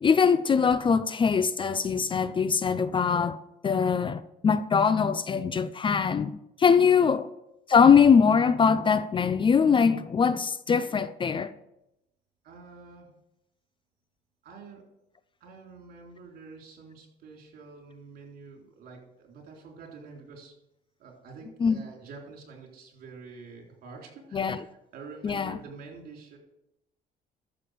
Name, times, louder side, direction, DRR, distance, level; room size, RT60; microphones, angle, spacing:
voice 1, 0.0-3.4 3.6-7.3 7.7-11.5 21.6-21.8 24.3-24.6 25.2-25.6, left 6 dB, 30° left, 0.5 m, -22 dB
voice 2, 12.4-13.1 14.4-14.9 15.4-20.5 21.0-26.4, right 4 dB, 65° right, 3.8 m, -47 dB
13.0 x 7.2 x 5.0 m
cardioid pair, 110°, 17 cm